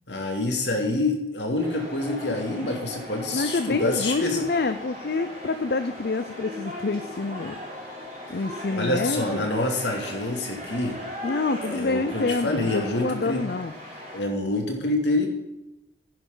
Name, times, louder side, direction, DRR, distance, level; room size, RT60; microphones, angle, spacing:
voice 1, 0.1-4.4 8.7-11.0 11.6-13.4 14.1-15.3, left 2 dB, 75° left, 2 dB, 2.5 m, -27 dB
sound 1, 1.6-14.2, equal, 35° right, 4.2 m, -38 dB
voice 2, 3.3-7.6 8.3-9.5 11.2-13.7, left 3 dB, 55° left, 10 dB, 0.5 m, -27 dB
11.0 x 10.5 x 3.9 m, 0.95 s
head